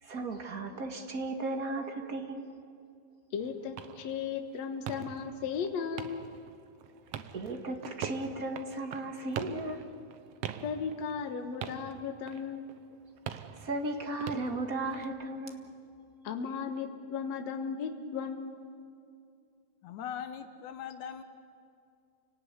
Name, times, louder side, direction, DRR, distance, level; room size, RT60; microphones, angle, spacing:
voice 1, 0.0-2.5 7.3-9.8 13.6-15.7, right 2 dB, 35° right, 5 dB, 2.0 m, -35 dB
voice 2, 3.3-6.2 10.6-12.7 16.2-18.7, left 6 dB, 65° left, 5 dB, 2.5 m, -36 dB
sound 1, 3.4-15.1, right 9 dB, 65° right, 1.9 m, -44 dB
voice 3, 19.8-21.2, left 8 dB, 85° left, 8 dB, 2.5 m, -40 dB
29.0 x 18.5 x 9.6 m, 2.5 s
omnidirectional pair, 3.3 m